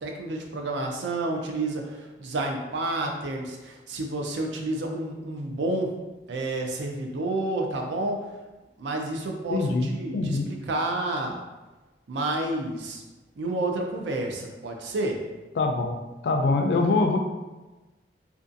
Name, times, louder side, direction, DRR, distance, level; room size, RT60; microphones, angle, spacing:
voice 1, 0.0-5.9 6.3-8.2 8.8-10.4 10.7-11.4 12.1-13.0 13.4-15.2, right 2 dB, 90° right, 2 dB, 0.4 m, -30 dB
voice 2, 9.5-10.5 15.6-16.0 16.2-17.2, left 3 dB, 65° left, 4 dB, 0.3 m, -24 dB
2.5 x 2.3 x 2.5 m, 1.1 s
head